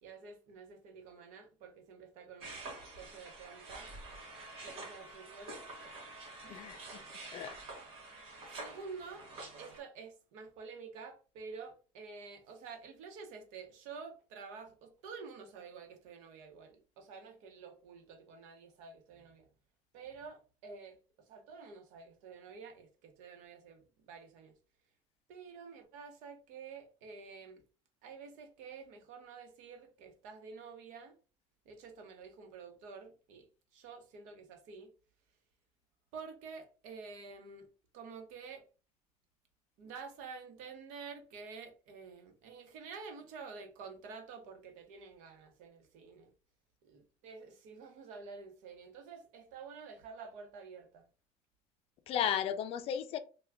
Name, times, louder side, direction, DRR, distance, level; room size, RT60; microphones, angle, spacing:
voice 1, 0.0-2.6 2.9-3.9 4.6-5.6 6.4-6.7 8.6-9.3 9.6-19.5 19.9-24.6 25.3-27.6 28.0-31.2 31.6-33.5 33.7-34.9 36.1-37.7 37.9-38.7 39.8-46.3 46.8-51.1, right 5 dB, 80° right, 0.9 m, -49 dB
sound 1, 2.4-9.8, right 2 dB, 45° right, 1.1 m, -48 dB
voice 2, 6.5-7.0 7.3-7.6 52.1-53.2, left 9 dB, 50° left, 0.4 m, -34 dB
3.3 x 2.2 x 3.5 m
cardioid pair, 160°, 13 cm